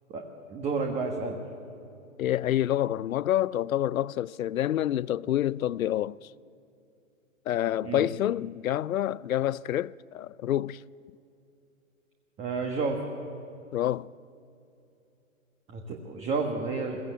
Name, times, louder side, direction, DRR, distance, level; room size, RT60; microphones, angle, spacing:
voice 1, 0.5-1.4 7.8-8.1 12.4-13.0 15.7-17.0, right 4 dB, 15° right, 1.3 m, -30 dB
voice 2, 2.2-6.3 7.5-10.8 13.7-14.1, left 12 dB, 85° left, 0.5 m, -28 dB
22.0 x 15.5 x 8.3 m
hypercardioid pair, 145°, 40 cm